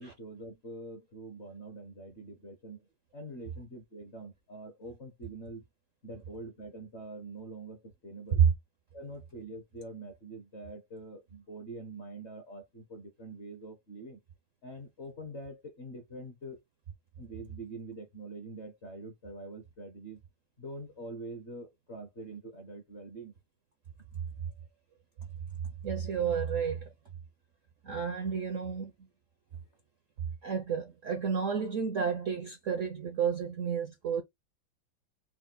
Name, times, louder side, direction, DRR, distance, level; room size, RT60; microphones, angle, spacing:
voice 1, 0.0-5.6 6.0-8.4 8.9-14.2 14.6-16.6 17.2-20.2 20.6-23.3, right 2 dB, 45° left, 1.0 m, -45 dB
voice 2, 25.8-26.9 27.8-28.9 30.4-34.2, right 6 dB, 60° right, 0.8 m, -32 dB
4.5 x 2.2 x 3.9 m
omnidirectional pair, 2.2 m